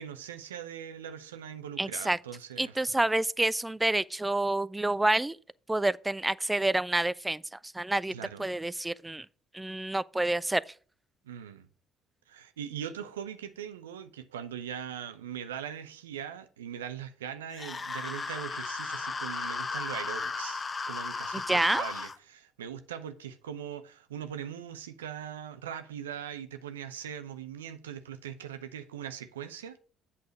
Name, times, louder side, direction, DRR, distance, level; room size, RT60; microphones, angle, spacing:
voice 1, 0.0-2.8 8.1-8.5 11.2-11.7 12.3-29.8, right 9 dB, 85° right, 0.6 m, -41 dB
voice 2, 1.8-2.2 2.6-5.4 5.7-7.4 7.7-9.3 9.5-10.6 21.5-21.8, right 2 dB, 10° right, 0.3 m, -28 dB
sound 1, 17.5-22.1, left 4 dB, 35° left, 0.8 m, -35 dB
8.3 x 4.8 x 5.2 m
hypercardioid pair, 55°, 0 cm